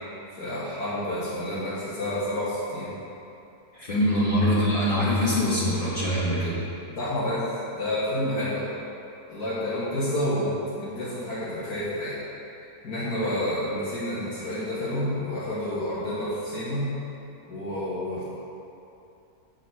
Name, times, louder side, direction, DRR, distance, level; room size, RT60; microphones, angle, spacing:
voice 1, 0.4-2.9 4.1-4.2 7.0-7.5 7.7-8.7 9.3-12.2 12.8-16.9 17.5-18.2, left 1 dB, 75° left, -12 dB, 2.5 m, -29 dB
voice 2, 3.7-6.6, equal, 35° left, -8 dB, 1.9 m, -23 dB
7.5 x 6.2 x 6.3 m, 2.7 s
omnidirectional pair, 1.7 m